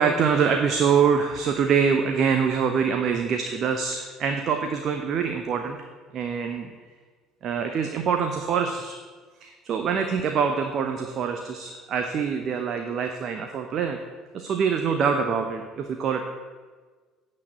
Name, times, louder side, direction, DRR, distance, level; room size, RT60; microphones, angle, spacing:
voice 1, 0.0-5.8 6.1-6.7 7.4-9.0 9.4-14.0 14.3-16.3, right 6 dB, 45° right, 5 dB, 0.8 m, -24 dB
8.6 x 6.5 x 8.5 m, 1.4 s
figure-of-eight pair, 60°, 0 cm